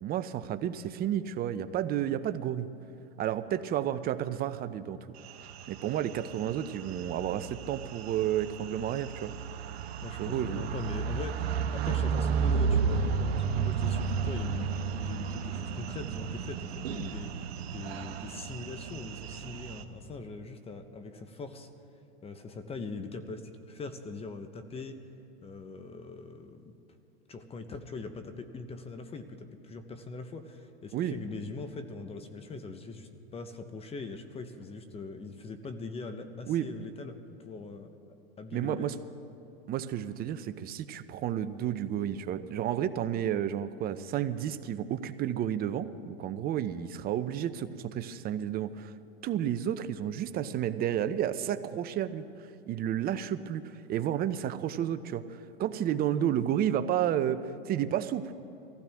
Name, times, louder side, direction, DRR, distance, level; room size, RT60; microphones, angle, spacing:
voice 1, 0.0-2.7 3.2-5.0 5.7-9.3 10.2-10.6 30.9-31.1 36.5-36.7 38.5-38.9 39.7-48.9 49.2-52.3 52.7-58.3, right 10 dB, 30° right, 12 dB, 0.6 m, -31 dB
sound 1, 5.2-19.8, right 6 dB, 85° right, 1.0 m, -33 dB
voice 2, 10.0-14.7 15.0-17.4 17.7-21.7 22.2-25.0 25.4-26.7 27.3-37.9 38.4-38.9, left 3 dB, 20° left, 8 dB, 0.9 m, -41 dB
23.0 x 15.5 x 3.5 m, 2.7 s
hypercardioid pair, 120°, 31 cm